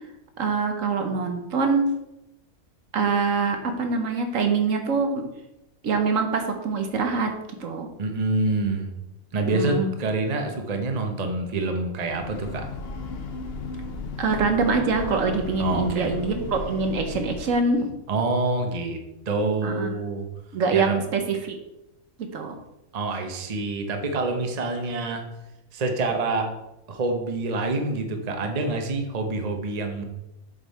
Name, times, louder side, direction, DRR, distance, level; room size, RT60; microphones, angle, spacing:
voice 1, 0.4-1.9 2.9-5.2 5.8-7.3 7.6-7.9 9.4-9.9 14.2-17.9 19.6-20.0 20.5-21.6 22.2-22.5, right 4 dB, 70° right, 5 dB, 1.2 m, -24 dB
voice 2, 8.0-8.9 9.3-12.6 15.6-16.1 18.1-19.0 19.3-20.2 20.7-21.0 22.9-25.2 25.7-26.5 26.9-30.0, right 3 dB, 35° right, 4 dB, 0.9 m, -26 dB
Breathing / Train, 11.9-17.7, left 4 dB, 55° left, 0.9 m, -35 dB
7.5 x 5.4 x 4.2 m, 0.91 s
omnidirectional pair, 1.5 m